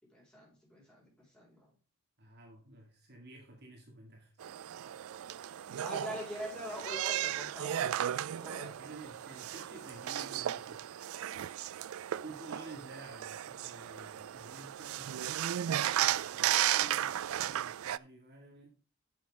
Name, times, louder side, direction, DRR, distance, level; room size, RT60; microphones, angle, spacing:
voice 1, 0.0-1.7 5.8-8.0 8.4-8.7, equal, 5° left, -4 dB, 5.1 m, -44 dB
voice 2, 2.2-4.3 8.6-10.9 12.2-15.2 15.4-18.8, right 2 dB, 45° right, 1 dB, 2.2 m, -52 dB
sound 1, 4.4-18.0, right 11 dB, 70° right, 0.3 m, -35 dB
11.0 x 7.1 x 3.6 m, 0.37 s
head